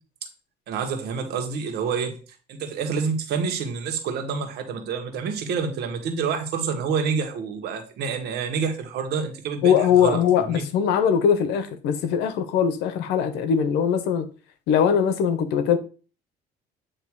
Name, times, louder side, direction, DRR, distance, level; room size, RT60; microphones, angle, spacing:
voice 1, 0.7-2.2 2.5-10.6, right 6 dB, 75° right, 1.7 m, -28 dB
voice 2, 9.6-14.3 14.7-15.8, left 8 dB, 90° left, 1.0 m, -21 dB
9.1 x 3.1 x 4.8 m
cardioid pair, 110°, 17 cm